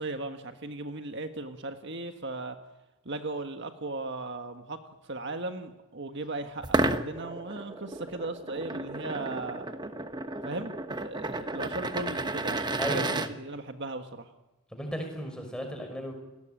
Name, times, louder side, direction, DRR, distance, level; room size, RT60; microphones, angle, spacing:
voice 1, 0.0-2.6 3.0-4.8 5.0-9.7 10.4-12.6 12.9-14.3, right 2 dB, 55° right, 6 dB, 1.6 m, -37 dB
sound 1, 6.6-13.3, right 2 dB, 20° right, 1.2 m, -32 dB
voice 2, 12.8-13.3 14.7-16.2, equal, 5° left, 4 dB, 5.6 m, -35 dB
30.0 x 18.5 x 9.0 m, 1.1 s
head